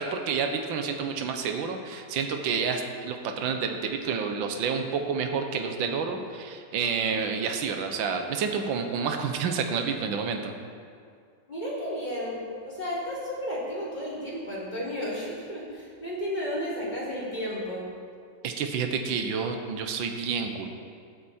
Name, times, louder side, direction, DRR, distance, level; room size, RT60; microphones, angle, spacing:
voice 1, 0.0-10.5 18.4-20.7, right 5 dB, 75° right, 5 dB, 1.7 m, -29 dB
voice 2, 11.5-12.4 12.7-17.8, equal, 20° left, -8 dB, 3.9 m, -33 dB
16.5 x 8.5 x 4.4 m, 2.2 s
omnidirectional pair, 2.1 m